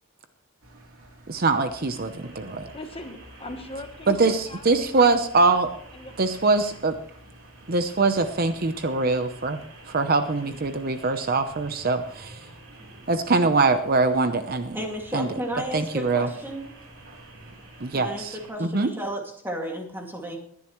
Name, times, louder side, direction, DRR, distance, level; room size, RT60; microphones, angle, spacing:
Engine, 0.6-18.0, right 1 dB, 90° right, 3.1 m, -50 dB
voice 1, 1.3-2.7 4.1-5.7 6.2-7.0 7.7-9.6 9.9-12.5 13.1-14.8 15.1-15.3 15.7-16.3 17.8-18.9, right 3 dB, 45° right, 9 dB, 0.8 m, -23 dB
sound 1, 1.4-18.5, right 2 dB, 70° right, 3.7 m, -51 dB
voice 2, 2.7-4.8 5.9-6.1, left 1 dB, 25° left, 6 dB, 1.0 m, -39 dB
voice 3, 14.7-16.7 17.9-20.4, right 1 dB, 10° right, 1 dB, 2.3 m, -33 dB
20.0 x 10.5 x 3.1 m, 0.64 s
head